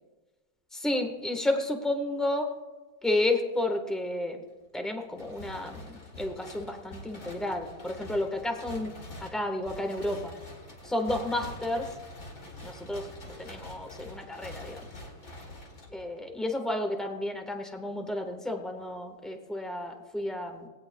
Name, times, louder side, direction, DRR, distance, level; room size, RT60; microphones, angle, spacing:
voice 1, 0.7-2.5 3.0-4.4 4.7-8.9 9.2-10.3 10.8-11.9 12.6-13.1 13.4-14.9 15.9-20.7, left 1 dB, ahead, 4 dB, 0.5 m, -31 dB
sound 1, 5.1-16.3, left 1 dB, 30° left, 2.4 m, -45 dB
19.5 x 16.5 x 2.2 m, 1.3 s
omnidirectional pair, 2.4 m